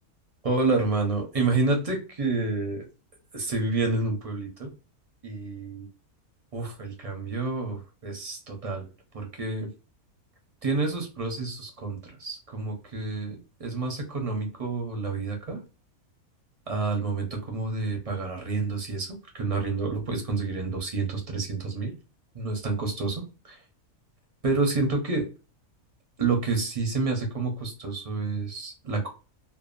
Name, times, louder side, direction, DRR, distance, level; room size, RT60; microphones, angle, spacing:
voice 1, 0.4-2.9 3.3-4.7 5.2-5.9 6.5-8.9 9.1-9.7 10.6-15.6 16.7-21.9 22.3-23.6 24.4-25.3 26.2-29.1, right 3 dB, 40° right, 3 dB, 0.5 m, -29 dB
2.7 x 2.2 x 2.4 m, 0.32 s
omnidirectional pair, 1.6 m